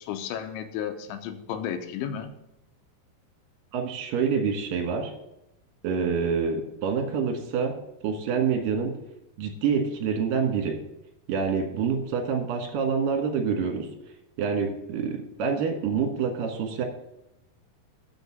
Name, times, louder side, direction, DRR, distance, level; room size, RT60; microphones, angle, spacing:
voice 1, 0.0-2.3, left 9 dB, 90° left, 7 dB, 3.2 m, -33 dB
voice 2, 3.7-5.1 5.8-7.7 8.0-9.0 9.4-10.8 11.3-13.9 14.4-16.9, right 6 dB, 60° right, 3 dB, 2.7 m, -27 dB
6.6 x 6.5 x 7.4 m, 0.86 s
omnidirectional pair, 5.3 m